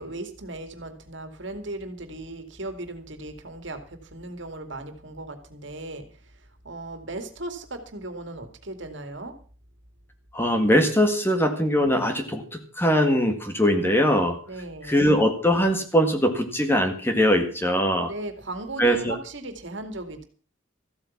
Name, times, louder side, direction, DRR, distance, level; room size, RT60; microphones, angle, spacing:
voice 1, 0.0-6.3 6.6-9.4 14.5-15.0 18.1-20.2, right 2 dB, 60° right, 8 dB, 2.3 m, -37 dB
voice 2, 10.3-14.4 14.9-18.1 18.8-19.2, equal, 10° left, 6 dB, 1.8 m, -21 dB
14.5 x 8.7 x 7.2 m, 0.40 s
head